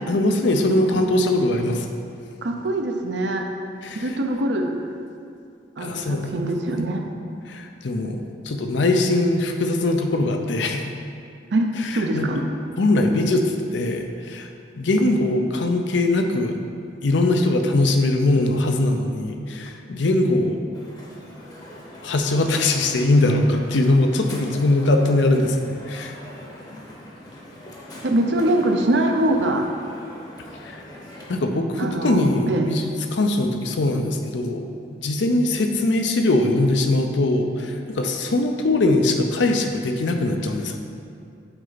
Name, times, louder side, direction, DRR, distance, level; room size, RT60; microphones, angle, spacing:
voice 1, 0.1-1.9 3.8-4.1 5.8-6.3 7.5-10.8 11.8-12.4 12.8-14.5 14.8-16.6 17.0-20.6 22.0-26.1 30.6-30.8 31.3-32.8 33.1-34.6 35.0-40.8, left 2 dB, 75° left, 4 dB, 0.6 m, -21 dB
voice 2, 2.4-3.5 3.9-4.7 5.8-7.1 11.5-12.4 28.0-29.6 31.8-32.7, right 1 dB, 65° right, 4 dB, 0.6 m, -23 dB
Crowd, 20.7-31.3, left 1 dB, 20° left, 0.8 m, -41 dB
7.8 x 4.4 x 4.0 m, 2.4 s
head